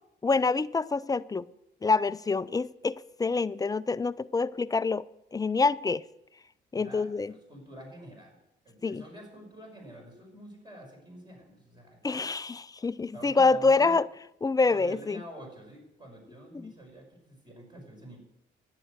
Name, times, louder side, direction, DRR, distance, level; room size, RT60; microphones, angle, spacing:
voice 1, 0.2-1.4 1.8-5.1 5.3-6.0 6.7-7.3 8.8-9.0 12.0-14.1 14.4-15.2 16.6-16.7, left 4 dB, 20° left, 0.4 m, -26 dB
voice 2, 6.7-8.4 8.6-12.3 13.1-14.0 14.7-18.2, equal, 20° right, 5.5 m, -48 dB
11.0 x 10.0 x 6.5 m
cardioid pair, 90°, 20 cm